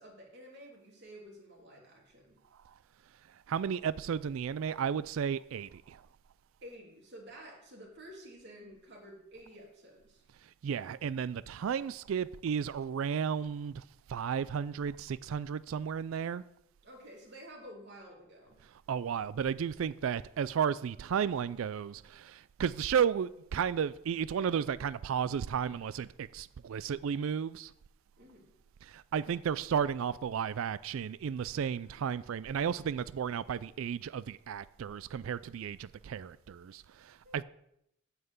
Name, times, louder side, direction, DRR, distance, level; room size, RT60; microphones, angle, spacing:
voice 1, 0.0-2.4 6.6-10.2 16.8-18.6 28.2-28.5 37.2-37.4, equal, 55° right, 3.0 m, -51 dB
voice 2, 3.5-6.0 10.6-13.8 14.1-16.4 18.9-27.7 28.8-37.4, right 7 dB, 75° right, 0.3 m, -33 dB
9.3 x 5.6 x 8.1 m
head